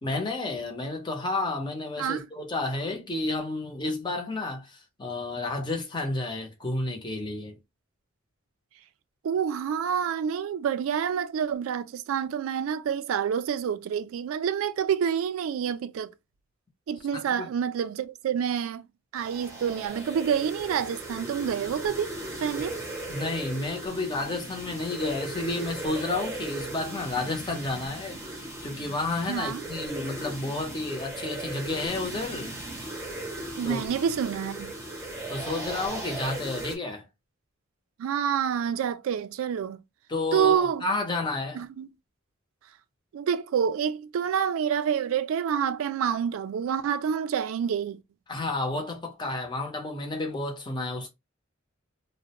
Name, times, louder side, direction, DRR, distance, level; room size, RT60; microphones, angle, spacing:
voice 1, 0.0-7.6 17.3-17.5 23.1-32.5 33.6-33.8 35.3-37.0 40.1-41.6 48.3-51.1, left 2 dB, 20° left, 0.6 m, -31 dB
voice 2, 9.2-16.1 16.9-18.8 19.1-22.8 29.3-29.6 33.6-34.8 38.0-39.8 40.3-40.8 41.5-41.9 43.1-48.0, right 8 dB, 80° right, 0.3 m, -28 dB
sound 1, 19.1-36.8, right 2 dB, 15° right, 0.7 m, -37 dB
2.4 x 2.0 x 2.8 m
head